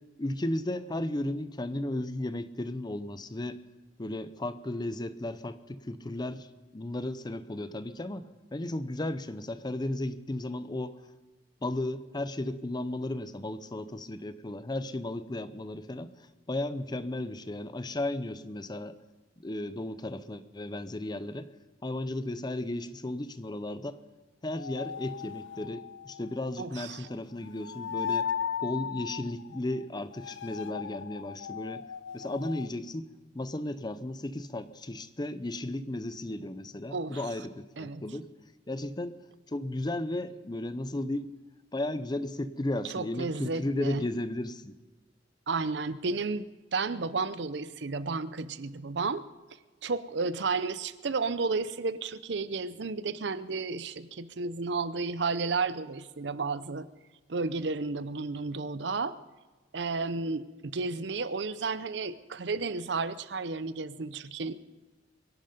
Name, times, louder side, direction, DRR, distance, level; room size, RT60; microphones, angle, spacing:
voice 1, 0.2-3.6 4.0-6.5 6.7-11.0 11.6-16.1 16.5-19.0 19.4-21.5 21.8-24.0 24.4-28.3 28.6-31.9 32.1-33.1 33.3-38.3 38.7-39.2 39.5-41.3 41.7-44.7, left 1 dB, 25° left, 13 dB, 0.6 m, -34 dB
sound 1, 24.5-27.1 27.4-32.7, left 7 dB, 75° left, 0.4 m, -37 dB
voice 2, 26.6-27.1 36.9-37.2 37.8-38.0 42.8-44.0 45.5-49.2 49.8-56.9 57.3-59.1 59.7-64.5, right 4 dB, 65° right, 15 dB, 0.6 m, -32 dB
23.5 x 11.0 x 5.2 m, 1.2 s
head